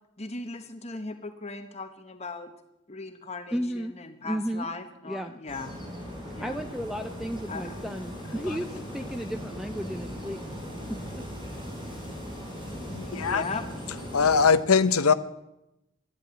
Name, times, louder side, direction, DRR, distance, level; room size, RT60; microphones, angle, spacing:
voice 1, 0.2-2.5 2.9-5.8 6.3-6.6 7.5-7.8 13.1-13.6, left 3 dB, 30° left, 7 dB, 1.1 m, -38 dB
voice 2, 3.5-3.9 4.2-4.7 5.1-5.3 6.4-10.4 10.9-11.2 11.8-11.9, equal, ahead, 7 dB, 0.5 m, -33 dB
sound 1, 5.5-14.5, equal, 20° right, 5.0 m, -38 dB
voice 3, 12.9-13.4 13.9-15.1, left 5 dB, 85° left, 12 dB, 0.9 m, -22 dB
13.0 x 11.5 x 9.3 m, 0.88 s
head